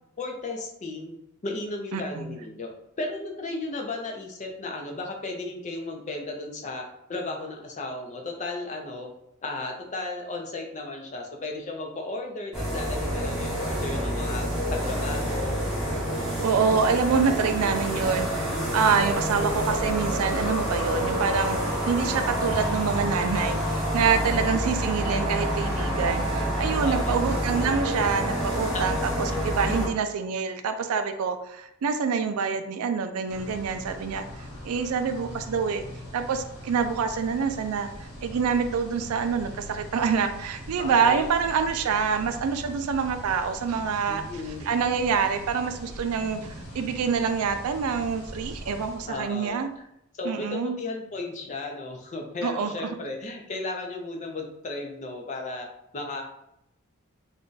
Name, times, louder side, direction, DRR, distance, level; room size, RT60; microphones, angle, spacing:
voice 1, 0.2-1.2 1.4-2.7 3.0-6.8 7.1-9.1 9.4-14.4 14.7-15.6 24.1-24.6 26.8-27.2 28.7-29.4 29.7-29.9 40.8-41.3 44.1-44.7 49.0-49.6 50.1-55.7 55.9-56.2, left 2 dB, 35° left, 2 dB, 0.5 m, -35 dB
voice 2, 1.9-2.4 16.4-35.8 36.1-44.2 44.6-49.7 50.2-50.8 52.4-52.9, right 6 dB, 85° right, 8 dB, 0.4 m, -26 dB
sound 1, 12.5-29.9, equal, ahead, 0.8 m, -28 dB
sound 2, 33.3-49.6, equal, 85° left, 1.2 m, -42 dB
2.5 x 2.2 x 3.8 m, 0.79 s
head